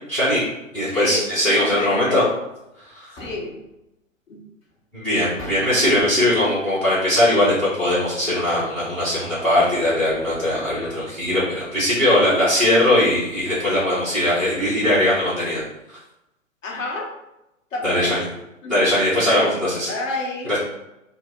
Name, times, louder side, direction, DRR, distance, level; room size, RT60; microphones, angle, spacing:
voice 1, 0.1-0.4 0.7-2.2 2.8-3.2 4.9-16.0 17.8-18.2 18.7-19.9 20.5-20.6, left 1 dB, 5° left, -14 dB, 0.5 m, -20 dB
voice 2, 0.9-2.3 3.1-3.5 4.3-4.4 10.5-11.0 16.6-17.1 17.7-18.2 18.6-18.8 19.2-19.6 19.9-20.5, left 2 dB, 70° left, -1 dB, 0.7 m, -29 dB
sound 1, 1.8-1.9 2.9-3.7 4.7-4.8 5.4-6.4, left 1 dB, 20° left, 0.8 m, -39 dB
2.1 x 2.0 x 3.6 m, 0.90 s
figure-of-eight pair, 120°, 40 cm